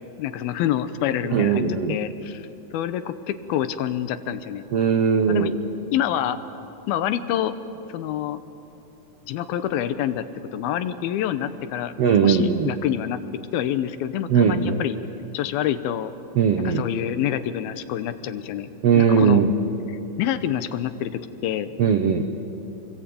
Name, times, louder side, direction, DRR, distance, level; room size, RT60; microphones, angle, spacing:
voice 1, 0.2-2.5 2.7-4.7 5.3-5.5 5.9-6.4 6.9-7.5 7.9-8.4 9.3-11.9 12.2-13.2 13.5-15.0 15.3-16.1 16.6-18.7 19.0-19.4 19.9-21.7, left 11 dB, 80° left, 11 dB, 2.7 m, -27 dB
voice 2, 1.3-1.9 4.7-5.5 12.0-12.7 14.3-14.8 16.4-16.8 18.8-19.5 21.8-22.2, right 6 dB, 85° right, 6 dB, 1.4 m, -19 dB
28.5 x 22.0 x 8.6 m, 2.9 s
omnidirectional pair, 4.4 m